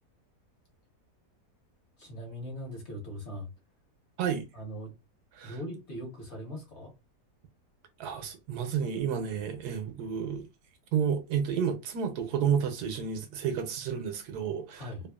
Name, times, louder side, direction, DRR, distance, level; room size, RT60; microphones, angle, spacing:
voice 1, 2.0-3.5 4.5-4.9 5.4-6.9 14.7-15.0, equal, 50° left, 1.1 m, -40 dB
voice 2, 8.0-10.4 10.9-14.8, right 7 dB, 80° right, 1.1 m, -31 dB
2.9 x 2.3 x 2.2 m
omnidirectional pair, 1.7 m